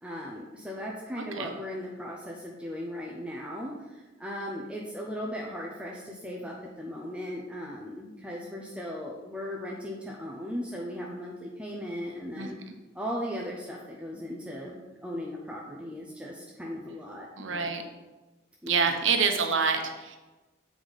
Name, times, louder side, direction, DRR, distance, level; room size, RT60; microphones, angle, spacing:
voice 1, 0.0-12.6 12.9-14.7 15.0-17.7 18.6-19.1, equal, 5° right, -3 dB, 0.7 m, -37 dB
voice 2, 1.2-1.5 12.4-12.5 17.4-17.8 18.7-20.2, right 5 dB, 70° right, 5 dB, 1.0 m, -27 dB
8.1 x 4.8 x 4.1 m, 1.2 s
head